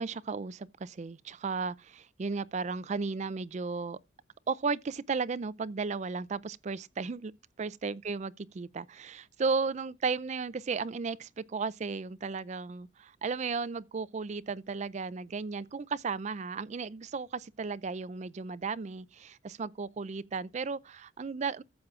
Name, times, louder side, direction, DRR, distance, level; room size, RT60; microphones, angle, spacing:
voice 1, 0.0-4.0 4.5-7.3 7.6-21.6, right 4 dB, 35° right, 0.4 m, -34 dB
14.5 x 7.3 x 2.4 m
head